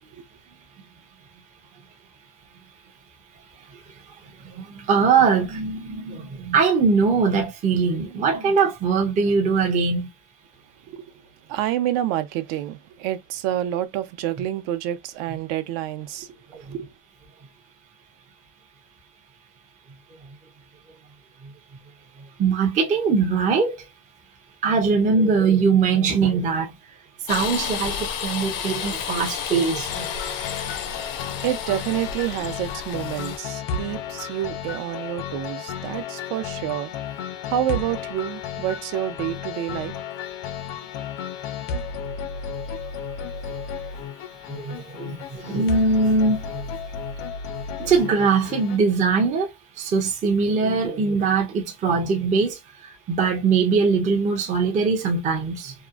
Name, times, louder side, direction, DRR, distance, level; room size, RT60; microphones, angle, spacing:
voice 1, 4.6-10.1 22.4-23.8 24.6-26.7 27.3-30.1 44.5-46.4 47.8-49.5 49.8-52.6 53.1-55.7, right 5 dB, 20° right, 0.3 m, -21 dB
voice 2, 11.5-16.9 30.8-31.1 31.4-37.2 37.5-39.9, right 12 dB, 75° right, 0.6 m, -28 dB
sound 1, 27.3-33.4, left 7 dB, 45° left, 0.5 m, -31 dB
sound 2, 29.9-48.8, left 6 dB, 90° left, 0.8 m, -33 dB
2.8 x 2.4 x 2.3 m
cardioid pair, 180°, 49 cm